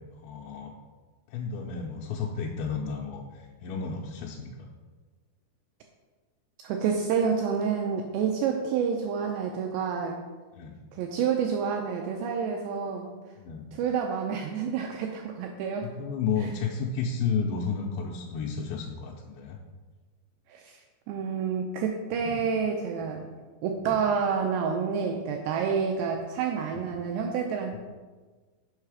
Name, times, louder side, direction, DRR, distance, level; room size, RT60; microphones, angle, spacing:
voice 1, 0.2-0.7 1.3-4.7 10.5-10.7 13.4-13.6 15.8-19.6 22.1-22.4 23.8-24.0 26.8-26.9 27.7-27.8, left 5 dB, 80° left, -1 dB, 2.7 m, -32 dB
voice 2, 6.6-10.2 10.9-13.1 13.7-15.9 16.4-16.5 20.5-20.8 21.1-23.3 23.6-27.8, right 6 dB, 85° right, 2 dB, 2.4 m, -28 dB
7.3 x 5.6 x 4.8 m, 1.3 s
omnidirectional pair, 5.5 m